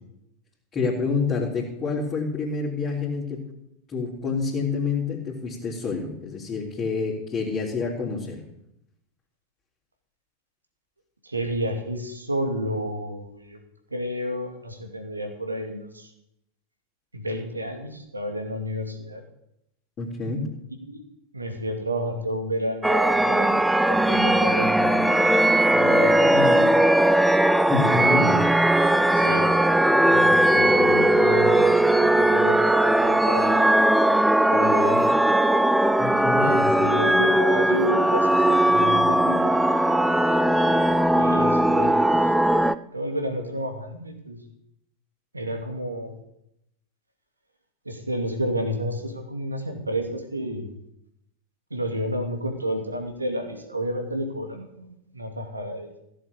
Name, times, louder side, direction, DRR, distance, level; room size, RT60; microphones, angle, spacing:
voice 1, 0.7-3.4 3.9-8.4 20.0-20.5 26.2-26.6 27.6-28.4 36.0-36.5, left 4 dB, 25° left, -6 dB, 3.6 m, -27 dB
voice 2, 11.2-13.6 13.9-16.1 17.1-19.2 20.9-21.0 21.3-25.3 25.7-26.3 29.1-29.5 30.1-33.8 34.5-35.1 36.4-39.5 41.1-42.3 42.6-44.4 45.3-46.2 47.8-50.7 51.7-55.9, equal, 80° right, 5 dB, 2.6 m, -31 dB
sound 1, 22.8-42.7, right 1 dB, 5° right, 0.5 m, -19 dB
16.0 x 7.6 x 8.5 m, 0.80 s
figure-of-eight pair, 90°, 0 cm